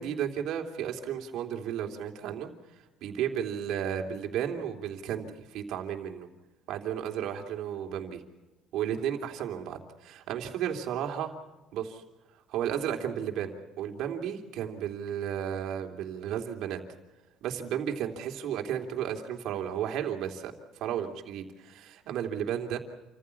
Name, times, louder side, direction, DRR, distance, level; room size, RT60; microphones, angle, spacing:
voice 1, 0.0-2.5 3.0-6.3 6.7-8.2 8.7-9.8 10.0-11.3 11.7-12.0 12.5-16.8 17.4-20.5 20.8-22.8, right 9 dB, 65° right, 3 dB, 3.1 m, -33 dB
28.5 x 15.0 x 8.5 m, 1.1 s
cardioid pair, 140°, 0 cm